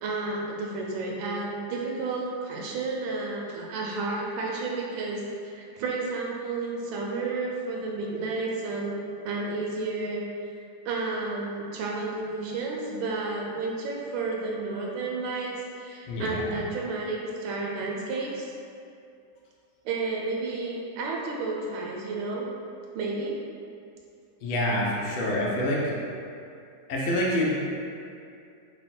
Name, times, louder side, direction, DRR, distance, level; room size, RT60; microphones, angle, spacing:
voice 1, 0.0-10.2 10.8-15.5 15.8-18.5 19.8-22.5 22.9-23.4, right 3 dB, 85° right, -2 dB, 1.4 m, -31 dB
voice 2, 16.1-16.5 24.4-25.8 26.9-27.5, left 1 dB, 85° left, -4 dB, 1.6 m, -26 dB
4.1 x 2.2 x 4.2 m, 2.5 s
omnidirectional pair, 2.1 m